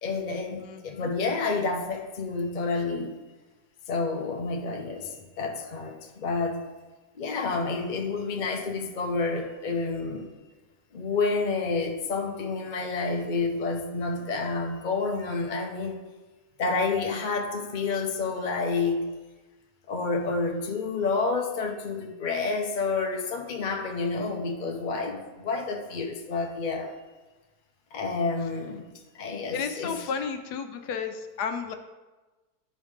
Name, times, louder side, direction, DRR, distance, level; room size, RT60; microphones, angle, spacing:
voice 1, 0.0-3.2 3.9-6.7 7.2-10.3 10.9-16.0 16.6-19.1 19.9-26.9 27.9-28.9 29.2-29.9, left 4 dB, 35° left, 2 dB, 0.9 m, -29 dB
voice 2, 0.6-1.1 29.5-31.7, left 6 dB, 90° left, 7 dB, 1.3 m, -32 dB
12.5 x 4.8 x 3.6 m, 1.2 s
omnidirectional pair, 1.7 m